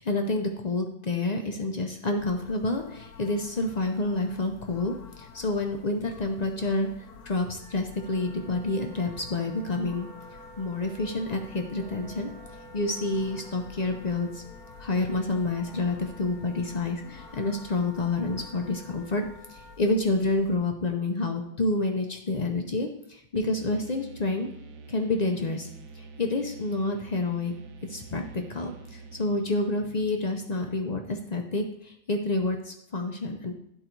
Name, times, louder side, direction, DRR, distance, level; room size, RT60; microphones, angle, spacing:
voice 1, 0.0-12.3 12.7-14.4 14.8-24.5 24.9-25.7 25.9-27.5 27.9-33.6, left 2 dB, 55° left, 4 dB, 0.4 m, -29 dB
sound 1, 2.2-20.6, left 6 dB, 80° left, 1.3 m, -49 dB
Wind instrument woodwind instrument, 7.6-19.8, right 2 dB, 20° right, 0.7 m, -50 dB
sound 2, 23.4-31.0, right 4 dB, 70° right, 1.1 m, -47 dB
11.0 x 3.9 x 4.5 m, 0.75 s
omnidirectional pair, 1.6 m